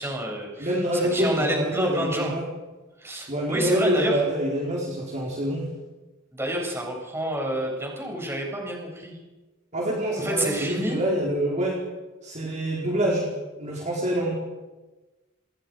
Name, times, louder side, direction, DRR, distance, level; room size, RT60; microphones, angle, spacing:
voice 1, 0.0-2.3 3.0-4.2 6.3-9.1 10.2-11.0, right 1 dB, 15° right, -1 dB, 7.6 m, -29 dB
voice 2, 0.6-2.4 3.3-5.7 9.7-11.8 12.2-13.3 13.6-14.3, right 1 dB, 35° right, -3 dB, 4.6 m, -26 dB
28.5 x 21.5 x 5.2 m, 1.2 s
head